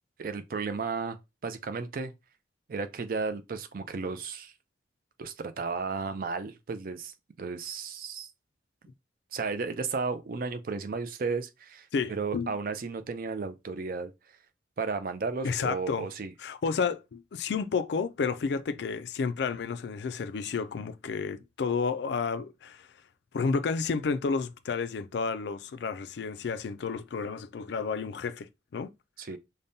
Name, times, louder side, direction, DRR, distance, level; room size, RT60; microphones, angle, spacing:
voice 1, 0.2-1.2 1.4-2.1 2.7-4.5 5.2-8.3 9.3-14.1 14.8-16.3 29.2-29.4, right 4 dB, 50° right, 0.4 m, -34 dB
voice 2, 11.9-12.5 15.4-16.1 16.4-22.9 23.3-28.9, left 5 dB, 65° left, 0.4 m, -31 dB
5.1 x 2.1 x 2.7 m
head